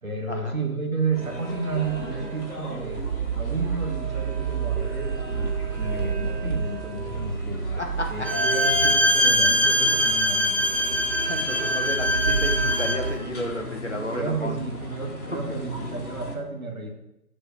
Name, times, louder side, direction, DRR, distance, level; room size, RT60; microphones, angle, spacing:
voice 1, 0.0-3.0 3.3-7.7 8.1-10.6 14.1-16.9, right 4 dB, 60° right, 2 dB, 1.2 m, -31 dB
sound 1, 1.1-16.3, left 2 dB, 65° left, 1.9 m, -37 dB
sound 2, 1.2-13.2, right 6 dB, 85° right, 0.7 m, -31 dB
voice 2, 7.8-8.3 11.2-14.6 15.3-15.4, left 1 dB, 45° left, 2 dB, 0.9 m, -32 dB
Bowed string instrument, 8.2-13.1, equal, 5° left, 0.3 m, -22 dB
7.1 x 3.3 x 5.1 m, 0.89 s
figure-of-eight pair, 180°, 47 cm